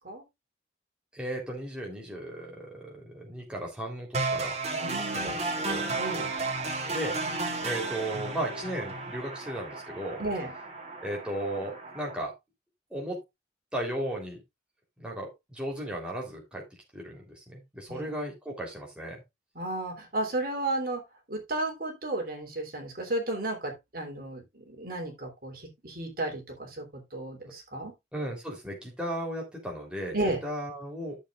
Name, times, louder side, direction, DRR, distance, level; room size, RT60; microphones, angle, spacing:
voice 1, 1.1-4.5 5.1-5.4 5.6-5.9 6.9-7.2 7.6-10.2 11.0-12.3 12.9-13.2 13.7-14.4 15.0-16.6 16.9-19.2 28.1-30.2 30.4-31.2, right 1 dB, 5° right, -2 dB, 3.5 m, -35 dB
sound 1, 4.1-12.1, right 3 dB, 35° right, 2.4 m, -33 dB
voice 2, 4.7-5.5 6.0-6.3 10.2-10.5 17.9-18.1 19.5-21.0 21.3-27.9 30.1-30.4, right 2 dB, 50° right, 2 dB, 3.4 m, -33 dB
13.5 x 7.3 x 2.5 m, 0.21 s
head